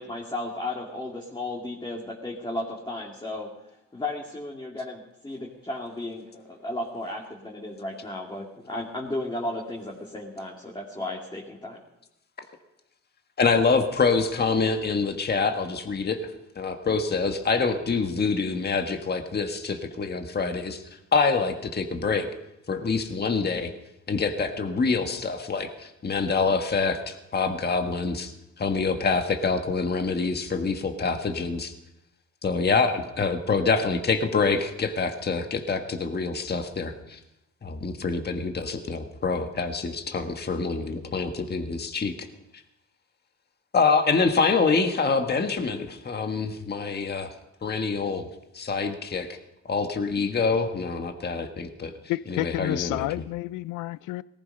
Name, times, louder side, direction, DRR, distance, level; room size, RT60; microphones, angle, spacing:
voice 1, 0.0-3.5 3.9-11.8, left 2 dB, 15° left, 2.5 m, -34 dB
voice 2, 13.4-22.3 22.7-23.7 24.1-31.7 32.4-37.2 37.6-42.3 43.7-47.3 47.6-48.3 48.5-49.4 49.6-51.9 52.3-53.1, left 4 dB, 35° left, 1.5 m, -26 dB
voice 3, 52.1-54.2, left 17 dB, 85° left, 0.5 m, -30 dB
18.5 x 14.0 x 5.4 m
cardioid pair, 90°, 30 cm